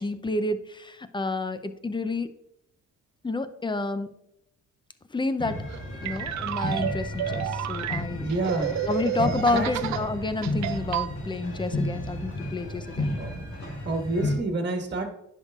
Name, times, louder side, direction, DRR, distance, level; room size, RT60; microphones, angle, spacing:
voice 1, 0.0-2.3 3.2-4.1 5.1-5.6 6.0-8.3 8.8-13.2, left 2 dB, 15° left, 11 dB, 0.5 m, -29 dB
Pipe Band, 5.4-14.4, left 1 dB, 90° left, 2.5 m, -33 dB
sound 1, 5.7-10.1 10.4-11.1, right 12 dB, 65° right, 0.4 m, -31 dB
voice 2, 8.1-8.8 9.5-9.7 12.6-12.8 13.1-13.3 13.8-15.1, right 2 dB, 35° right, 3 dB, 1.6 m, -29 dB
10.0 x 5.6 x 2.4 m, 0.81 s
cardioid pair, 90°, 30 cm